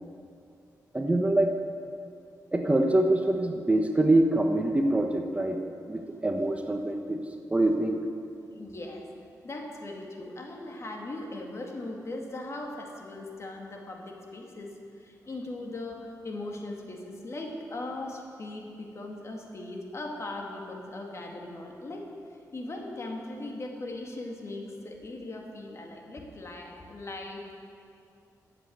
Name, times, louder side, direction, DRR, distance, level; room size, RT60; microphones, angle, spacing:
voice 1, 0.9-1.5 2.5-5.6 5.9-7.2 7.5-8.0, right 1 dB, 20° right, 3 dB, 1.2 m, -24 dB
voice 2, 8.5-9.0 9.4-27.5, left 2 dB, 45° left, 1 dB, 2.2 m, -39 dB
13.5 x 8.3 x 7.9 m, 2.5 s
cardioid pair, 75°, 7 cm